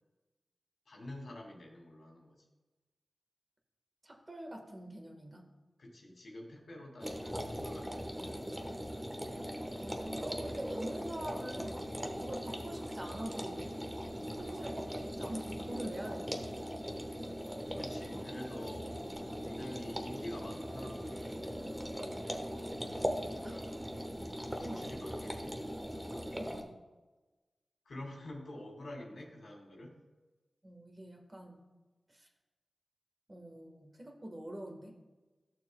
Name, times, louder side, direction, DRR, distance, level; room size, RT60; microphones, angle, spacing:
voice 1, 0.9-2.4 5.8-8.6 17.8-19.1 19.4-21.5 22.3-22.9 23.4-23.8 24.6-25.6 27.9-30.0, left 1 dB, 80° left, -1 dB, 2.3 m, -48 dB
voice 2, 4.0-5.5 9.8-11.9 12.2-13.8 14.2-16.5 23.4-23.6 24.6-24.9 26.3-26.8 30.6-31.6 32.1-32.3 33.3-34.9, right 1 dB, 30° right, 3 dB, 1.4 m, -45 dB
sound 1, 7.0-26.6, equal, 10° right, 1.1 m, -40 dB
14.0 x 6.8 x 2.2 m, 1.2 s
wide cardioid pair, 70°, 0 cm